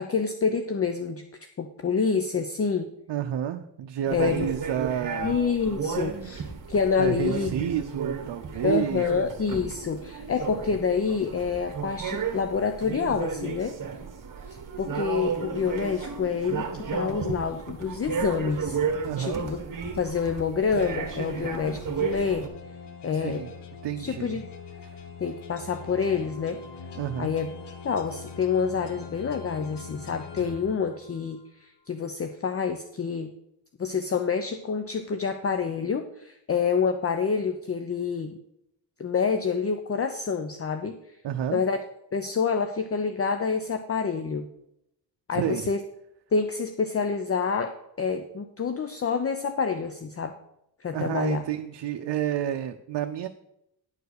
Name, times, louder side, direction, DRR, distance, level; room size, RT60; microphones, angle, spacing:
voice 1, 0.0-2.9 4.1-4.5 5.2-7.5 8.6-13.8 14.5-18.8 19.2-19.6 19.9-22.5 23.0-23.4 24.0-24.5 25.2-26.6 27.2-27.5 27.8-33.3 33.8-38.4 39.0-41.2 41.5-41.8 42.1-44.5 45.3-45.8 46.3-47.7 48.0-50.4 50.8-51.4, left 5 dB, 35° left, 8 dB, 0.6 m, -27 dB
voice 2, 3.1-5.3 7.0-9.3 19.0-19.4 23.1-23.5 23.8-24.4 24.8-25.0 27.0-27.3 41.2-41.6 45.3-45.7 50.9-53.3, right 10 dB, 75° right, 6 dB, 0.6 m, -30 dB
sound 1, 4.1-22.5, right 5 dB, 45° right, 1.5 m, -33 dB
sound 2, 20.8-31.4, left 5 dB, 70° left, 1.1 m, -43 dB
10.5 x 4.7 x 6.5 m, 0.80 s
cardioid pair, 100°, 43 cm